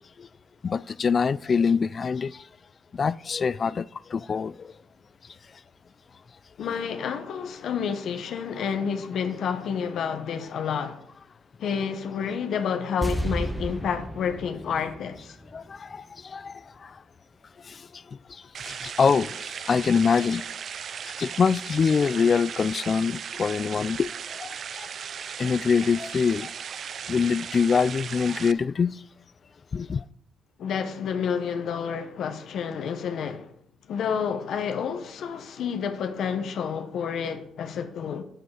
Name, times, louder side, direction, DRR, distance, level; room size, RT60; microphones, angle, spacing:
voice 1, 0.6-2.4 2.9-4.7 15.5-17.0 17.6-17.9 18.3-20.4 21.2-24.9 25.4-26.5 27.1-29.0 29.7-30.0, left 5 dB, 40° left, 0.3 m, -25 dB
voice 2, 6.6-11.1 11.6-15.3 30.6-33.5 33.9-38.2, left 7 dB, 70° left, 1.0 m, -29 dB
sound 1, 13.0-16.2 16.5-16.6, right 1 dB, 5° right, 0.9 m, -33 dB
sound 2, 18.5-28.5, right 7 dB, 55° right, 0.3 m, -37 dB
9.1 x 7.8 x 4.9 m
cardioid pair, 90°, 0 cm